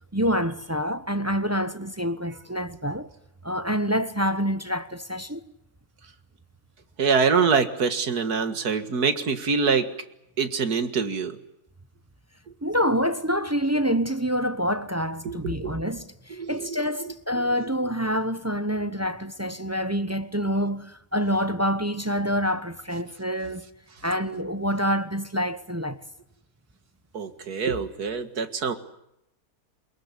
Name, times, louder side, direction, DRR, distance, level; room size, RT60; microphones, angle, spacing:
voice 1, 0.1-3.1 3.4-5.4 12.6-23.7 24.0-26.0, equal, 15° right, 0.7 m, -27 dB
voice 2, 7.0-9.9 10.4-11.4 15.2-15.7 16.4-17.1 27.1-28.7, right 5 dB, 70° right, 2.4 m, -25 dB
23.0 x 22.0 x 9.8 m
omnidirectional pair, 1.7 m